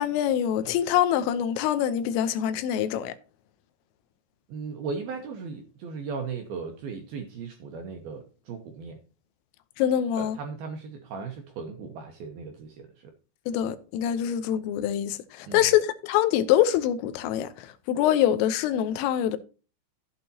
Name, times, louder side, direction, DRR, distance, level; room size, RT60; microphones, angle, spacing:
voice 1, 0.0-3.1 9.8-10.4 13.5-19.4, left 10 dB, 80° left, 3.4 m, -25 dB
voice 2, 4.5-9.0 10.2-13.1 15.5-15.7, right 5 dB, 70° right, 2.3 m, -37 dB
14.0 x 8.4 x 2.8 m
omnidirectional pair, 5.8 m